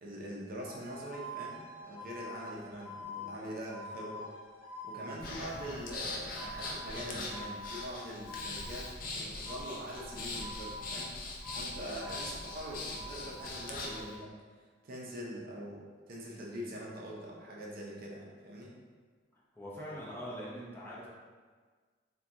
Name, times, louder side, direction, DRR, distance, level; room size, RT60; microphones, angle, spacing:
voice 1, 0.0-4.3 4.8-11.1 11.5-14.3 14.8-18.7, equal, 55° right, -3 dB, 0.5 m, -43 dB
sound 1, 0.7-9.0 9.4-11.1 11.4-14.0, left 1 dB, 30° left, 1.0 m, -47 dB
Breathing, 5.2-14.1, left 2 dB, 50° left, 0.4 m, -41 dB
voice 2, 19.5-21.1, equal, 10° left, -8 dB, 0.6 m, -42 dB
3.5 x 2.3 x 2.7 m, 1.5 s
head